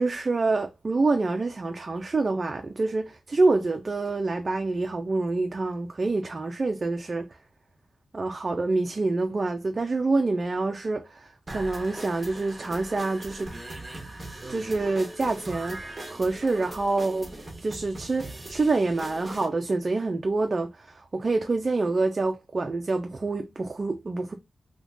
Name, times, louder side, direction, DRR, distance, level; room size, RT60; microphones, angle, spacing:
voice 1, 0.0-7.3 8.1-13.5 14.5-17.3 17.6-24.3, right 3 dB, 35° right, 0.4 m, -27 dB
sound 1, 11.5-19.5, right 2 dB, 20° right, 1.0 m, -40 dB
3.6 x 2.8 x 2.5 m
wide cardioid pair, 135°, 0 cm